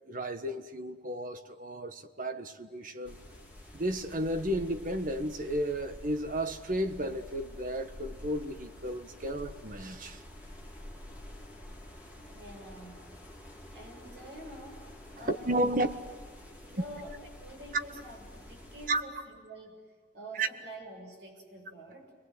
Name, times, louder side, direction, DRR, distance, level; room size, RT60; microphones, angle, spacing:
voice 1, 0.1-3.2 3.7-10.2 15.2-15.9 18.9-19.0 20.3-20.5, right 1 dB, 50° right, 1.5 m, -33 dB
sound 1, 3.0-19.0, left 1 dB, 10° right, 3.5 m, -49 dB
voice 2, 12.3-13.1 13.7-14.9 15.2-15.7 16.5-19.8 20.1-22.1, right 1 dB, 75° right, 7.0 m, -47 dB
29.5 x 23.0 x 8.1 m
head